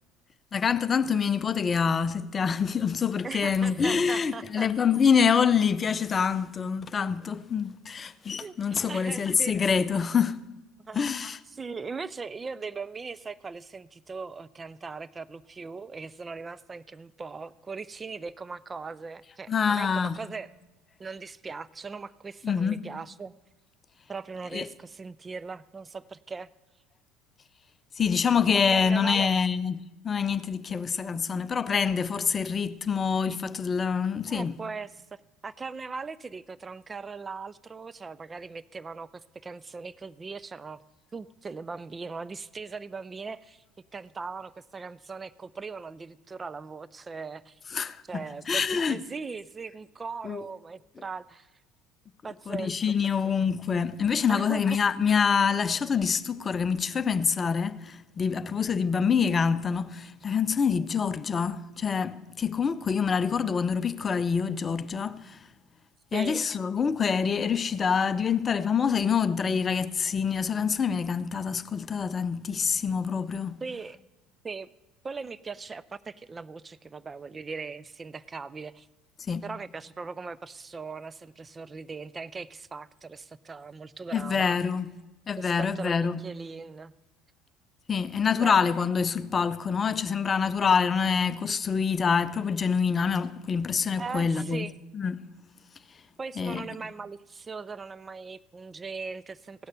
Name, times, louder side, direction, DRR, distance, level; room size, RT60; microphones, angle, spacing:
voice 1, 0.5-10.4 10.9-11.4 19.5-20.2 22.4-22.8 24.5-24.7 28.0-34.6 47.7-49.0 50.2-50.4 52.5-65.4 66.1-73.6 79.3-79.4 84.1-84.9 85.3-86.2 87.9-95.2 96.4-96.7, left 6 dB, 30° left, 0.5 m, -26 dB
voice 2, 3.2-4.7 8.4-9.5 10.9-11.2 11.5-20.5 21.0-23.3 24.1-26.5 28.5-29.4 30.7-30.8 34.3-34.9 35.4-40.8 41.1-43.6 43.9-47.6 48.1-51.5 52.2-52.7 53.2-53.3 54.3-54.8 66.1-66.4 73.6-74.0 74.4-74.7 75.0-78.9 79.4-84.6 85.4-86.9 88.4-88.6 94.0-94.7 96.2-99.7, right 4 dB, 25° right, 0.3 m, -39 dB
16.0 x 6.4 x 6.7 m
figure-of-eight pair, 65°, 0 cm